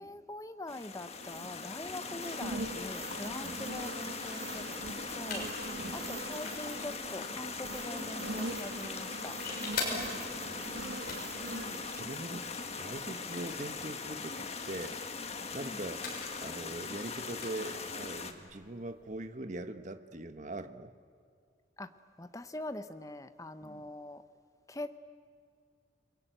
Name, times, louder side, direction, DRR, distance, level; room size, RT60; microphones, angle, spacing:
voice 1, 0.0-5.5 5.9-9.4 11.5-11.8 15.6-15.8 21.8-21.9 22.2-24.2 24.7-25.0, left 1 dB, 15° left, 10 dB, 0.8 m, -43 dB
sound 1, 0.7-18.3, left 4 dB, 35° left, 1.6 m, -41 dB
sound 2, 1.1-13.3 13.7-13.9, right 2 dB, 65° right, 1.9 m, -43 dB
sound 3, 4.2-19.3, left 3 dB, 50° left, 6.8 m, -46 dB
voice 2, 9.9-11.1 11.8-15.0 15.5-16.0 16.4-20.9 23.6-23.9, right 2 dB, 40° right, 10 dB, 1.1 m, -42 dB
29.5 x 21.5 x 9.1 m, 2.2 s
head